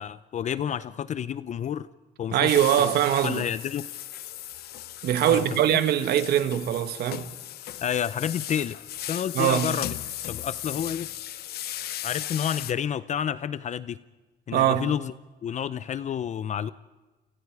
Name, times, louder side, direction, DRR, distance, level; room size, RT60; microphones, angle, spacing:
voice 1, 0.0-1.9 2.2-2.9 3.2-3.9 5.2-5.4 5.7-5.8 7.8-9.9 10.3-11.1 12.0-14.0 14.5-15.1 15.4-16.7, left 9 dB, 45° left, 0.7 m, -30 dB
voice 2, 2.3-3.4 5.0-7.2 9.3-9.7 14.5-14.9, right 11 dB, 70° right, 1.7 m, -22 dB
sound 1, 2.5-12.7, left 13 dB, 70° left, 1.0 m, -36 dB
29.5 x 25.0 x 4.9 m
cardioid pair, 110°, 17 cm